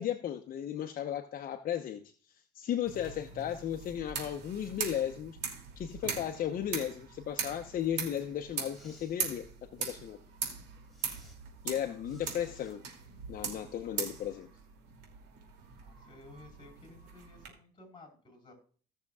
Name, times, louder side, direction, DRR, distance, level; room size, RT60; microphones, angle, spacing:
voice 1, 0.0-2.0 2.5-5.4 5.8-9.5 9.8-10.2 11.6-12.8 13.3-14.5, left 10 dB, 55° left, 6 dB, 0.9 m, -35 dB
sound 1, 2.9-17.5, right 6 dB, 85° right, 2.7 m, -41 dB
Respiratory sounds, 8.6-9.2 9.8-10.0 10.9-11.4 12.0-12.8, left 1 dB, ahead, 3.5 m, -60 dB
voice 2, 15.7-18.5, left 2 dB, 25° left, 4 dB, 4.3 m, -55 dB
17.0 x 6.6 x 2.4 m, 0.42 s
cardioid pair, 110°, 17 cm